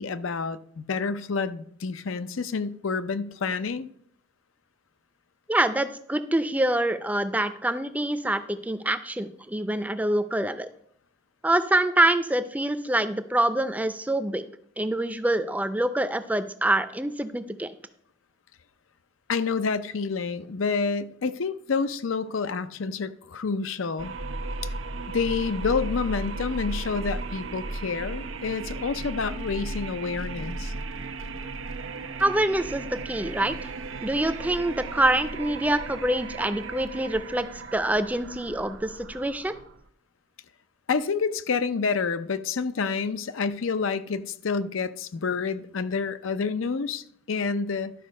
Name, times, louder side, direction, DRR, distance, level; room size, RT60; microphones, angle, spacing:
voice 1, 0.0-3.9 19.3-24.1 24.6-24.7 25.1-30.7 40.9-47.9, left 5 dB, 85° left, 0.6 m, -28 dB
voice 2, 5.5-10.7 11.4-14.4 14.8-17.7 32.2-33.7 34.0-37.5 37.7-39.5, right 1 dB, 10° right, 0.5 m, -25 dB
sound 1, 24.0-39.9, right 3 dB, 90° right, 0.8 m, -35 dB
12.0 x 5.1 x 6.5 m
head